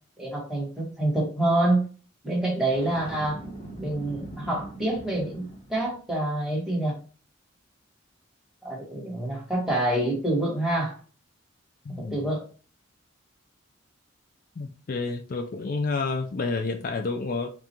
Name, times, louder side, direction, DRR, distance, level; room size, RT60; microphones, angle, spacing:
voice 1, 0.2-1.8 2.2-3.4 3.8-6.9 8.6-10.9 12.1-12.4, right 1 dB, 5° right, -4 dB, 1.3 m, -26 dB
Boom, 2.7-5.9, right 1 dB, 30° left, 1.1 m, -41 dB
voice 2, 11.9-12.3 14.6-17.5, left 3 dB, 45° left, 5 dB, 0.4 m, -29 dB
3.6 x 2.4 x 4.2 m, 0.39 s
head